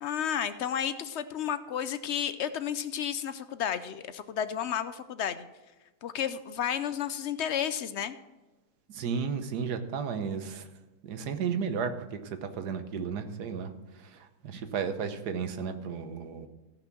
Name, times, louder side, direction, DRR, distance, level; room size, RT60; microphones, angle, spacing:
voice 1, 0.0-5.4 6.0-8.2, left 9 dB, 65° left, 12 dB, 0.7 m, -32 dB
voice 2, 8.9-10.7 11.0-16.5, right 6 dB, 90° right, 8 dB, 1.5 m, -34 dB
15.0 x 5.9 x 6.0 m, 1.1 s
omnidirectional pair, 1.7 m